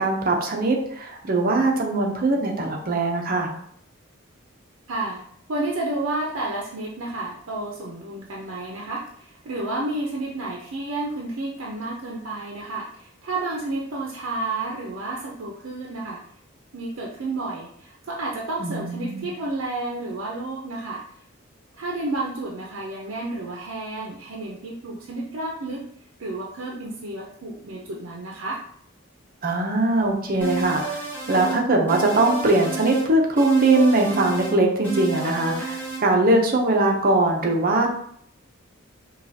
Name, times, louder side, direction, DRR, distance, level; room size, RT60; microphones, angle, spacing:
voice 1, 0.0-3.5 18.6-19.2 29.4-31.0 31.3-37.9, right 2 dB, 45° right, 1 dB, 0.7 m, -21 dB
voice 2, 4.9-5.2 5.5-16.2 16.7-21.0 21.7-25.9 26.2-28.6, right 2 dB, 85° right, -2 dB, 0.6 m, -31 dB
sound 1, 30.4-31.6 31.9-33.1 33.4-34.6 34.8-36.0, right 5 dB, 10° left, 1.1 m, -31 dB
5.2 x 2.4 x 2.7 m, 0.65 s
head